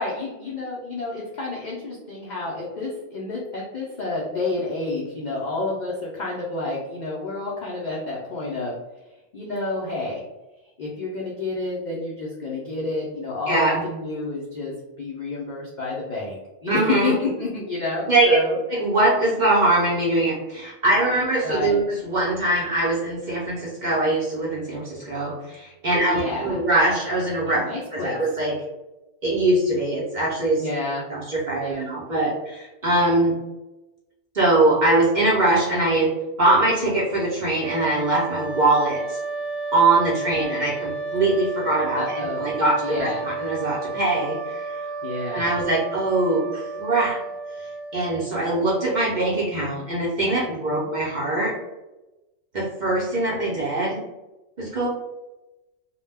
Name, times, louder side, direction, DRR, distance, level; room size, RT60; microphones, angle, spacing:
voice 1, 0.0-8.7 9.3-10.2 10.8-18.6 21.4-21.8 25.9-26.6 27.4-28.2 30.6-31.0 31.6-31.9 40.1-40.6 41.9-43.2 45.0-45.5 50.5-50.9, left 3 dB, 75° left, -4 dB, 0.4 m, -29 dB
voice 2, 13.5-13.8 16.7-17.2 18.1-18.3 18.7-27.6 27.9-28.5 29.2-30.6 31.1-33.3 34.3-36.1 36.4-39.2 39.7-44.8 45.3-47.2 47.9-51.5 52.5-54.0 54.6-54.9, right 2 dB, 50° right, -6 dB, 0.6 m, -22 dB
sound 1, 37.6-48.5, right 3 dB, 80° right, 1.0 m, -32 dB
2.2 x 2.1 x 3.3 m, 1.0 s
omnidirectional pair, 1.4 m